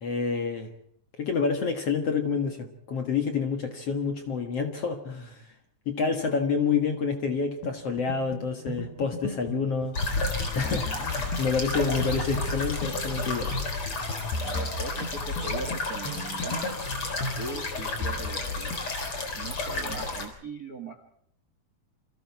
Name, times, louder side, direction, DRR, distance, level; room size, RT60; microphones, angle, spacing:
voice 1, 0.0-0.7 1.2-5.4 5.9-10.0 10.6-13.5, left 5 dB, 50° left, 2.2 m, -28 dB
sound 1, 7.6-18.9, left 3 dB, 85° left, 4.1 m, -37 dB
sound 2, 9.9-20.3, left 2 dB, 35° left, 4.7 m, -31 dB
voice 2, 14.4-16.7 17.4-18.8 19.4-21.0, right 3 dB, 40° right, 1.4 m, -39 dB
28.5 x 26.0 x 4.7 m
omnidirectional pair, 4.5 m